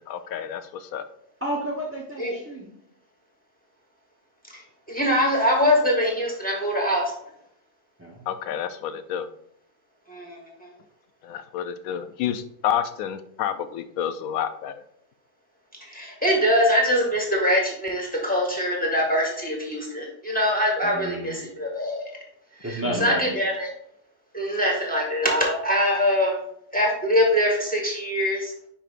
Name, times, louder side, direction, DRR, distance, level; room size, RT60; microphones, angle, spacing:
voice 1, 0.1-1.0 8.3-9.3 11.2-14.8 22.8-23.3, left 9 dB, 70° left, 11 dB, 1.0 m, -29 dB
voice 2, 1.4-2.7 8.0-8.2 20.8-21.4 22.6-23.2, right 1 dB, 10° right, -5 dB, 0.8 m, -31 dB
voice 3, 4.9-7.0 10.1-10.4 15.9-22.1 22.6-23.7 24.3-26.4 26.7-28.5, equal, 5° left, -2 dB, 1.6 m, -23 dB
10.0 x 5.1 x 2.5 m, 0.71 s
omnidirectional pair, 1.7 m